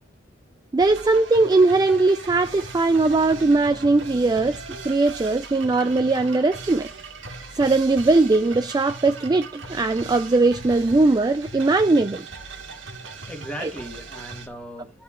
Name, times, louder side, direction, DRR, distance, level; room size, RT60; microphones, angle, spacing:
voice 1, 0.7-4.6 4.8-6.9 7.6-12.2 13.6-13.7, right 3 dB, 20° right, 0.3 m, -20 dB
sound 1, 0.8-14.5, right 3 dB, 75° right, 1.6 m, -39 dB
voice 2, 13.1-15.0, right 1 dB, 5° left, 1.6 m, -38 dB
11.5 x 7.2 x 2.4 m
head